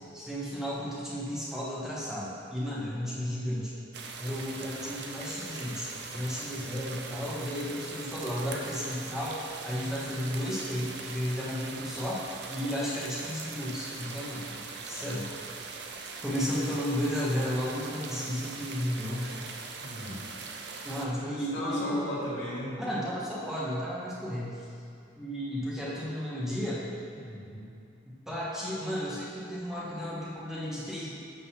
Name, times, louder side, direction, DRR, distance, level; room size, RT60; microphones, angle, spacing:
voice 1, 0.1-3.7 4.2-15.7 16.2-19.4 20.8-22.0 22.8-24.7 25.1-26.8 28.3-31.1, equal, ahead, -7 dB, 1.2 m, -33 dB
sound 1, 3.9-21.1, right 4 dB, 55° right, 0.6 m, -41 dB
voice 2, 19.8-20.2 21.2-22.8 27.1-27.7, equal, 65° left, -7 dB, 1.9 m, -36 dB
8.1 x 4.0 x 5.7 m, 2.4 s
head